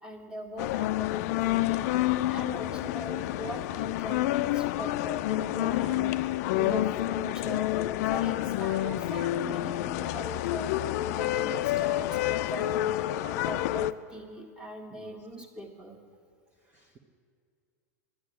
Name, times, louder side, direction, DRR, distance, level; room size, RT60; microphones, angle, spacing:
voice 1, 0.0-7.7 8.1-16.0, right 1 dB, 10° right, 3 dB, 1.6 m, -41 dB
sound 1, 0.6-13.9, left 15 dB, 60° left, 0.4 m, -28 dB
voice 2, 16.6-17.0, right 5 dB, 25° right, 1 dB, 0.9 m, -53 dB
11.0 x 9.5 x 7.4 m, 2.3 s
hypercardioid pair, 110°, 9 cm